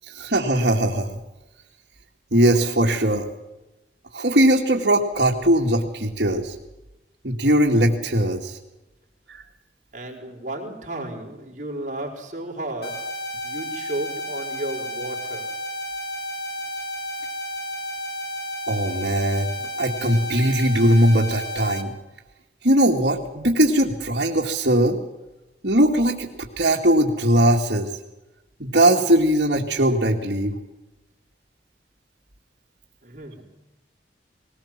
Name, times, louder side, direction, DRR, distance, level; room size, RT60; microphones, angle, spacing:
voice 1, 0.1-1.2 2.3-3.3 4.1-6.6 7.2-8.6 9.3-9.4 18.7-19.5 19.8-21.9 22.6-25.0 25.6-27.9 28.6-30.6, right 1 dB, 65° right, -2 dB, 2.2 m, -20 dB
voice 2, 9.9-15.5 33.0-33.5, right 1 dB, 45° right, 1 dB, 4.6 m, -33 dB
sound 1, 12.8-21.8, equal, 65° left, 3.0 m, -32 dB
20.5 x 19.5 x 7.4 m, 0.99 s
head